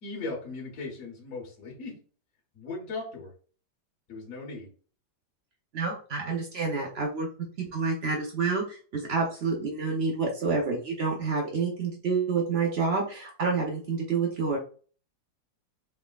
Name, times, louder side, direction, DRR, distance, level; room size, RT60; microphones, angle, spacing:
voice 1, 0.0-2.0 2.5-3.3 4.1-4.7 7.6-7.7, left 3 dB, 50° left, -2 dB, 1.5 m, -38 dB
voice 2, 5.7-7.3 7.7-14.6, right 4 dB, 65° right, 0 dB, 0.6 m, -28 dB
4.3 x 3.5 x 2.3 m, 0.40 s
omnidirectional pair, 2.0 m